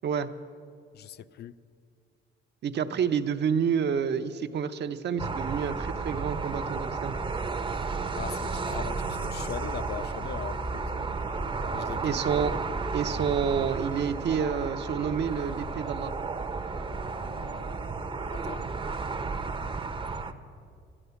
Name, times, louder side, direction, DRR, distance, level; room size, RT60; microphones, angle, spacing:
voice 1, 0.9-1.6 8.2-10.9 11.7-12.2 18.3-18.7, left 10 dB, 55° left, 0.4 m, -40 dB
voice 2, 2.6-7.1 12.0-12.5 12.9-16.1, right 7 dB, 60° right, 0.7 m, -29 dB
sound 1, 5.2-20.3, right 4 dB, 25° right, 0.7 m, -33 dB
sound 2, 7.0-18.2, left 1 dB, 80° left, 2.6 m, -49 dB
13.0 x 11.0 x 6.9 m
cardioid pair, 90°, 20 cm